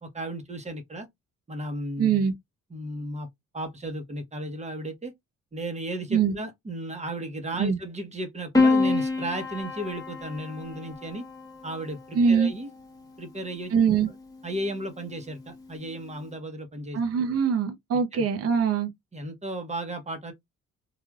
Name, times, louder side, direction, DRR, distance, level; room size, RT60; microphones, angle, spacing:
voice 1, 0.0-1.1 1.5-2.1 2.7-3.3 3.5-5.1 5.5-11.2 11.6-12.7 13.2-13.7 14.4-17.0 18.1-18.2 19.1-20.3, right 1 dB, 25° right, 0.9 m, -34 dB
voice 2, 2.0-2.3 6.1-6.3 7.6-7.8 12.1-12.5 13.7-14.1 16.9-18.9, right 6 dB, 50° right, 0.7 m, -23 dB
Piano, 8.5-13.0 14.2-14.9, left 3 dB, 10° left, 1.0 m, -27 dB
3.2 x 2.4 x 2.3 m
cardioid pair, 90°, 30 cm